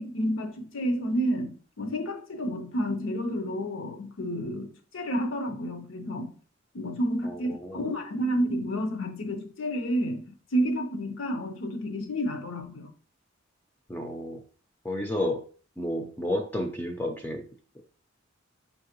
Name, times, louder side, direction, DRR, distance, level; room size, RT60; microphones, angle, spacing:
voice 1, 0.0-6.3 6.7-12.9, equal, 85° left, 0.7 m, -30 dB
voice 2, 7.2-7.9 13.9-14.4 14.8-15.4 15.8-17.4, left 1 dB, 10° left, 0.4 m, -31 dB
4.6 x 2.9 x 2.9 m
head